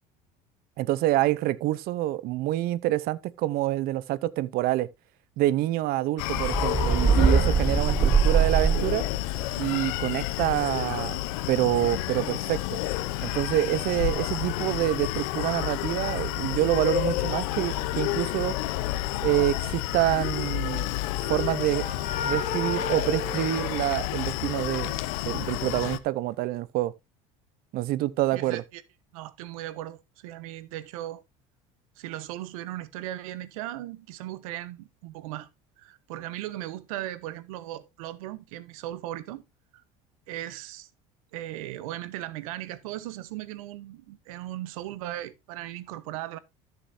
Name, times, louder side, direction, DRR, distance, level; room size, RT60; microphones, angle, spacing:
voice 1, 0.8-4.9 5.4-9.1 9.6-11.2 11.5-12.8 13.2-18.6 19.2-20.9 21.3-21.9 22.2-25.0 25.2-26.9 27.7-28.6, right 15 dB, 60° right, 0.8 m, -27 dB
Screaming, 6.2-26.0, left 15 dB, 85° left, 0.8 m, -30 dB
sound 1, 6.4-9.2, right 6 dB, 20° right, 0.7 m, -22 dB
sound 2, 20.5-24.4, left 4 dB, 45° left, 3.2 m, -35 dB
voice 2, 28.3-28.8 29.1-31.2 32.0-35.5 35.8-39.4 39.7-39.8 40.3-40.9 41.3-46.4, right 14 dB, 90° right, 1.0 m, -37 dB
14.0 x 6.8 x 2.7 m
supercardioid pair, 105°, 17 cm